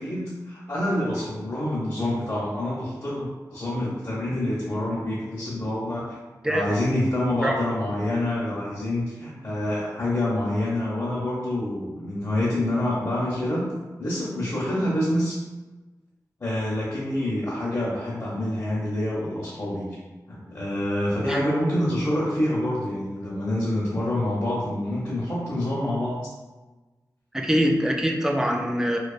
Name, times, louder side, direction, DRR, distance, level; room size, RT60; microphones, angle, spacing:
voice 1, 0.0-6.2 6.5-13.6 14.0-15.4 16.4-19.9 20.3-26.2, left 1 dB, 40° left, -8 dB, 0.6 m, -27 dB
voice 2, 27.3-29.0, equal, 10° right, 1 dB, 0.3 m, -23 dB
2.3 x 2.3 x 2.4 m, 1.2 s
wide cardioid pair, 70°, 7 cm